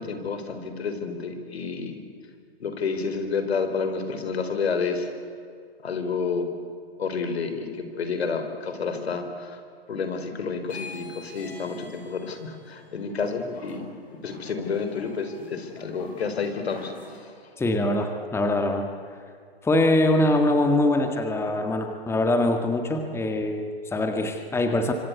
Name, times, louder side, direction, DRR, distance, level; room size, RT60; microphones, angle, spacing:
voice 1, 0.0-2.0 2.6-5.1 5.8-6.5 7.0-9.6 9.9-13.9 14.2-17.3, left 5 dB, 75° left, 7 dB, 4.6 m, -30 dB
sound 1, 10.6-17.2, left 3 dB, 25° left, 6.6 m, -45 dB
voice 2, 17.6-18.9 19.6-24.9, left 1 dB, 10° left, 5 dB, 1.9 m, -23 dB
26.5 x 25.5 x 8.4 m, 2.3 s
hypercardioid pair, 125°, 32 cm